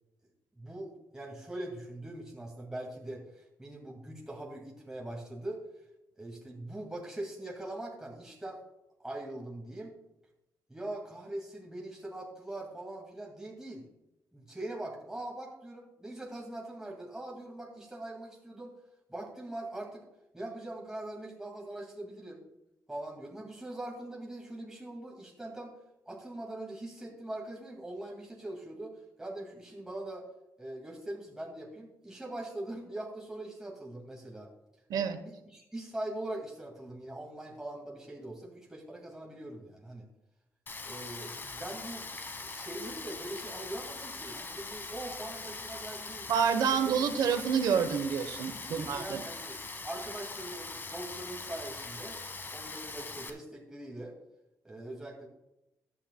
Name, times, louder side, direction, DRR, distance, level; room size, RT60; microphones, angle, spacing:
voice 1, 0.6-5.6 6.2-8.6 9.0-10.0 10.7-13.8 14.3-18.7 19.1-20.0 20.3-22.4 22.9-25.8 26.1-30.3 30.6-34.5 34.9-40.0 40.8-46.3 48.6-52.2 52.5-54.1 54.6-55.3, right 1 dB, 10° right, -2 dB, 2.2 m, -42 dB
Rain, 40.7-53.3, left 3 dB, 35° left, 1.3 m, -42 dB
voice 2, 46.3-49.2, right 7 dB, 85° right, 9 dB, 1.0 m, -28 dB
14.5 x 10.0 x 2.3 m, 0.91 s
cardioid pair, 95°, 7 cm